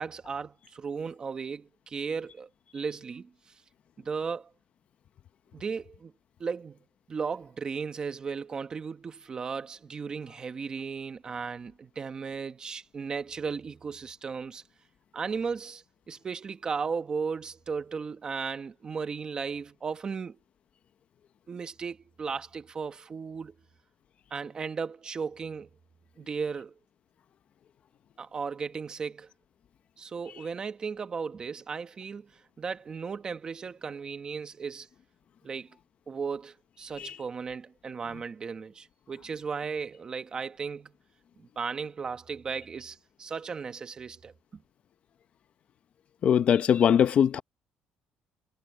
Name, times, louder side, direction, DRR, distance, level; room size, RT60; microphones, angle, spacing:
voice 1, 0.0-3.3 4.0-4.5 5.5-6.1 6.4-6.8 7.1-14.6 15.1-20.4 21.5-23.5 24.3-25.7 26.2-26.7 28.2-29.3 30.0-32.3 32.6-34.9 35.4-35.7 36.1-40.9 41.4-44.6, right 5 dB, 25° right, 1.4 m, -35 dB
voice 2, 46.2-47.4, left 8 dB, 40° left, 0.8 m, -21 dB
cardioid pair, 165°, 3 cm